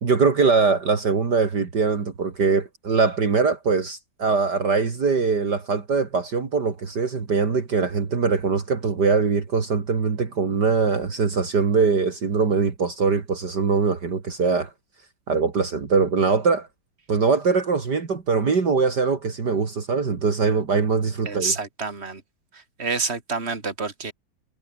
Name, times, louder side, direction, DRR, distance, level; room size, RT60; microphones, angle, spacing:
voice 1, 0.0-14.7 15.3-16.7 17.1-21.5, right 5 dB, 55° right, 3.0 m, -22 dB
voice 2, 21.3-22.2 22.5-24.1, right 4 dB, 30° right, 3.4 m, -28 dB
omnidirectional pair, 2.1 m